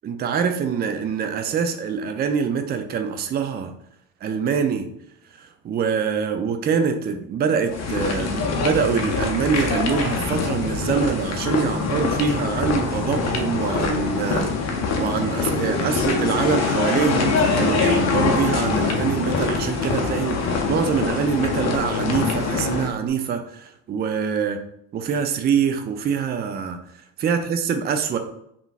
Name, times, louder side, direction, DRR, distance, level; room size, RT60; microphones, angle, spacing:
voice 1, 0.0-3.7 4.2-4.8 5.4-14.5 15.0-24.6 24.9-26.8 27.2-28.2, right 6 dB, 25° right, 7 dB, 0.4 m, -24 dB
sound 1, 7.7-22.9, left 4 dB, 40° left, 0.7 m, -24 dB
3.7 x 2.4 x 2.4 m, 0.75 s
hypercardioid pair, 65°, 41 cm